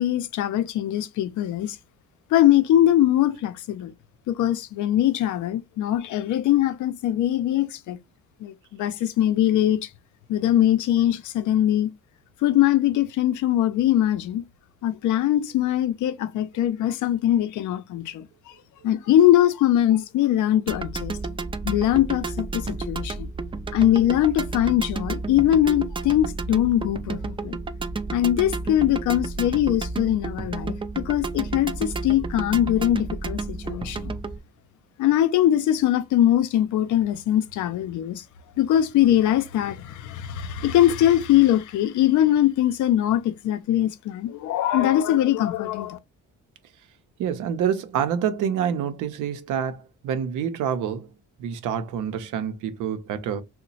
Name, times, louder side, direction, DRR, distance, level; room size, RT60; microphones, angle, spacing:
voice 1, 0.0-1.8 2.3-3.9 4.3-8.0 8.4-9.8 10.3-11.9 12.4-14.4 14.8-18.3 18.8-21.2 21.6-23.3 23.7-27.6 28.1-34.1 35.0-38.2 38.6-46.0, left 12 dB, 75° left, 0.6 m, -22 dB
sound 1, 20.7-34.4, right 3 dB, 20° right, 0.3 m, -31 dB
voice 2, 47.2-51.1 51.4-53.4, right 8 dB, 85° right, 0.7 m, -27 dB
2.9 x 2.2 x 4.0 m
cardioid pair, 90°, 30 cm